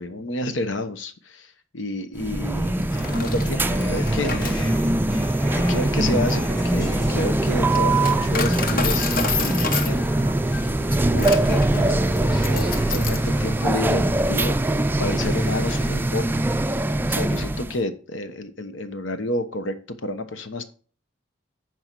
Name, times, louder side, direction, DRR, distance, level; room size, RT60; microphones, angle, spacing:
voice 1, 0.0-4.5 5.7-16.4 16.7-20.6, left 2 dB, 80° left, 9 dB, 1.0 m, -30 dB
sound 1, 2.2-17.8, right 1 dB, 10° right, 0.4 m, -22 dB
Coin (dropping), 2.8-13.3, left 5 dB, 50° left, 1.0 m, -31 dB
sound 2, 2.9-16.1, equal, 20° left, 2.2 m, -35 dB
10.5 x 4.8 x 4.6 m, 0.41 s
head